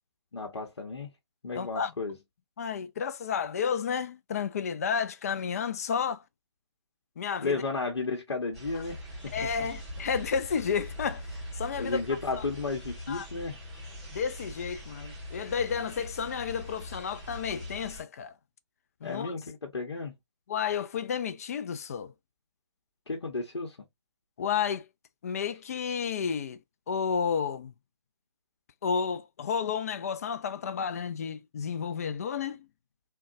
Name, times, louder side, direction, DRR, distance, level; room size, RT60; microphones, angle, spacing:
voice 1, 0.3-1.1 1.4-2.2 7.4-9.5 11.8-13.6 19.0-20.1 23.1-23.8, left 3 dB, 75° left, 0.9 m, -33 dB
voice 2, 1.6-1.9 2.6-6.2 7.2-7.6 9.3-11.2 11.6-12.0 13.1-13.3 14.1-18.3 19.0-19.3 20.5-22.1 24.4-24.8 25.2-26.6 26.9-27.7 28.8-32.7, left 6 dB, 35° left, 0.4 m, -31 dB
sound 1, 8.5-18.0, equal, ahead, 1.8 m, -42 dB
3.7 x 2.2 x 2.4 m
figure-of-eight pair, 145°, 15 cm